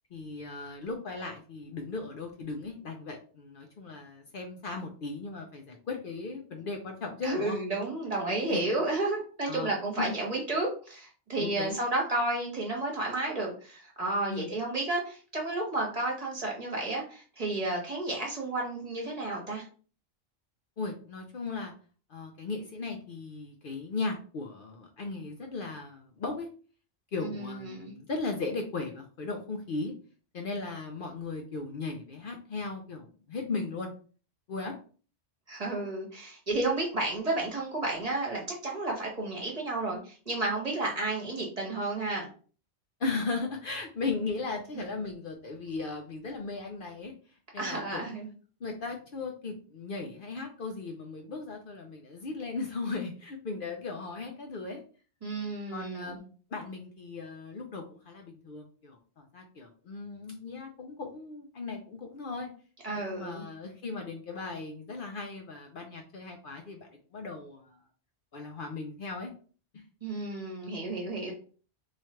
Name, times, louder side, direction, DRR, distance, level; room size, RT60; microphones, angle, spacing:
voice 1, 0.1-7.6 8.5-8.7 9.5-10.1 11.4-11.8 14.3-14.5 20.8-21.7 22.1-26.5 27.1-29.9 30.3-33.9 34.5-34.8 43.0-48.1 48.6-54.8 55.7-62.5 62.9-67.8 68.3-69.3 69.7-69.8, left 3 dB, 60° left, 3 dB, 0.7 m, -37 dB
voice 2, 7.2-19.6 27.2-27.9 35.5-42.3 47.6-48.3 55.2-56.2 62.8-63.4 70.0-71.3, right 2 dB, 35° right, -1 dB, 1.2 m, -32 dB
3.1 x 2.4 x 4.2 m, 0.40 s
omnidirectional pair, 1.1 m